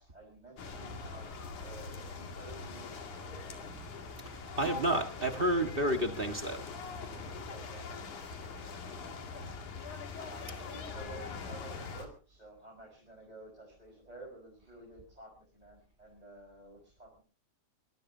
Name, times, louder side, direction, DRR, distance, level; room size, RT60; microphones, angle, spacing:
voice 1, 0.0-3.9 7.1-9.5 10.1-17.2, right 2 dB, 10° right, -2 dB, 5.1 m, -52 dB
sound 1, 0.6-12.1, left 4 dB, 75° left, 3.9 m, -43 dB
voice 2, 4.6-6.6, right 1 dB, 30° right, 5 dB, 1.1 m, -30 dB
23.5 x 18.0 x 2.8 m, 0.36 s
omnidirectional pair, 3.5 m